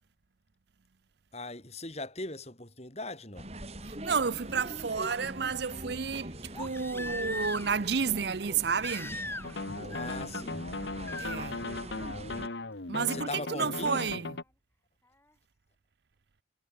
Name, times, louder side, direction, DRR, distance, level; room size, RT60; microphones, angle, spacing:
voice 1, 1.3-3.5 9.9-10.6 13.1-14.2, left 2 dB, 35° left, 6.7 m, -40 dB
sound 1, 3.4-12.5, right 1 dB, 35° right, 5.3 m, -43 dB
Crying sobbing, 3.8-3.9 6.5-7.9 8.8-9.7 9.9-10.4 11.1-11.4 13.0-13.1, left 2 dB, 10° left, 4.8 m, -39 dB
voice 2, 3.8-9.2 11.2-11.6 12.9-14.4, right 6 dB, 60° right, 0.6 m, -31 dB
sound 2, 9.4-14.4, left 2 dB, 65° left, 1.6 m, -37 dB
head